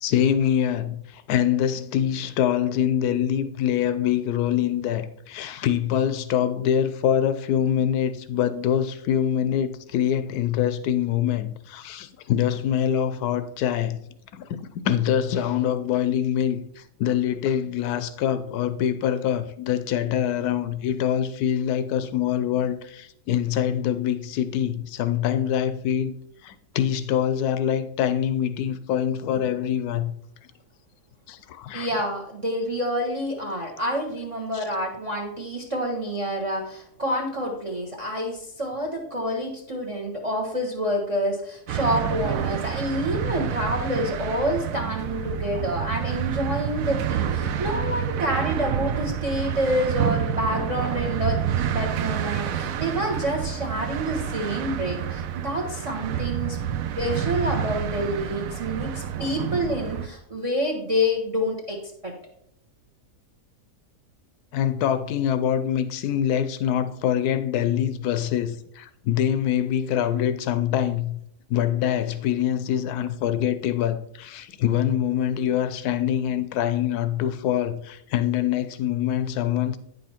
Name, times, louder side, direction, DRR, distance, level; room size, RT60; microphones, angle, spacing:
voice 1, 0.0-14.0 14.3-26.1 26.4-30.1 31.3-31.9 34.5-34.6 64.5-71.2 71.5-79.8, left 10 dB, 75° left, 1.1 m, -24 dB
voice 2, 31.7-56.6 57.0-62.1, equal, 25° right, 0.9 m, -28 dB
sound 1, 41.7-60.1, right 9 dB, 65° right, 0.9 m, -28 dB
9.3 x 5.5 x 4.3 m
omnidirectional pair, 1.8 m